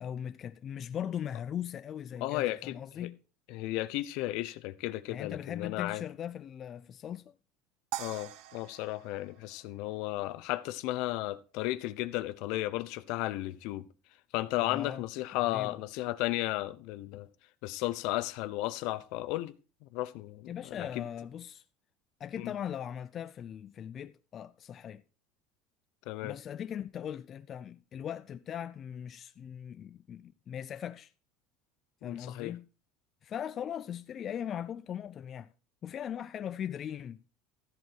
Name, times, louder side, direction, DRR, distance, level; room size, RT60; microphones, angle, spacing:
voice 1, 0.0-3.2 5.1-7.3 14.6-15.0 15.4-15.8 20.5-21.6 22.2-25.0 26.2-31.1 32.0-32.7 33.2-35.5 35.8-37.2, left 9 dB, 35° left, 0.4 m, -39 dB
voice 2, 2.2-3.1 3.5-6.0 8.0-13.9 14.3-17.3 17.6-19.5 19.8-21.1 22.4-22.5 26.1-26.4 32.0-32.5, left 17 dB, 65° left, 0.8 m, -34 dB
sound 1, 7.9-10.3, right 14 dB, 65° right, 0.8 m, -43 dB
13.5 x 8.0 x 4.5 m
supercardioid pair, 120°, 0 cm